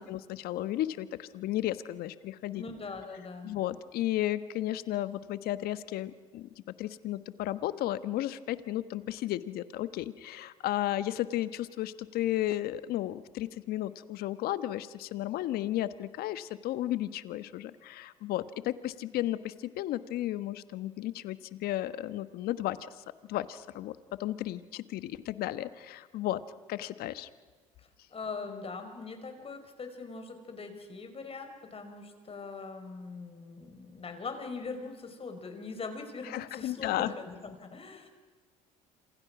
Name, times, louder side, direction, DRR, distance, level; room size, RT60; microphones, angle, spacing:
voice 1, 0.0-2.6 3.4-6.5 6.8-26.4 26.7-27.3 36.2-37.1, left 14 dB, 65° left, 13 dB, 1.3 m, -34 dB
voice 2, 2.5-3.5 27.8-38.1, left 4 dB, 35° left, 7 dB, 5.3 m, -41 dB
27.5 x 27.0 x 6.2 m, 1.4 s
hypercardioid pair, 65°, 17 cm